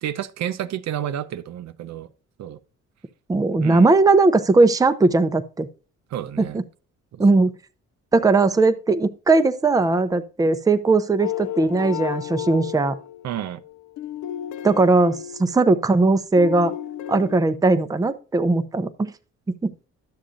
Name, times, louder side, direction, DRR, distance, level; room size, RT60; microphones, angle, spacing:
voice 1, 0.0-2.1 2.4-2.6 3.6-3.9 6.1-6.6 7.1-7.2 13.2-13.6, right 10 dB, 65° right, 0.6 m, -30 dB
voice 2, 3.3-5.7 6.4-6.6 7.2-7.5 8.1-13.0 14.6-16.7 17.1-19.1 19.6-19.7, right 3 dB, 10° right, 0.5 m, -19 dB
sound 1, 11.2-16.1 16.4-17.5, left 12 dB, 70° left, 0.6 m, -33 dB
11.5 x 7.1 x 2.5 m
cardioid pair, 90°, 30 cm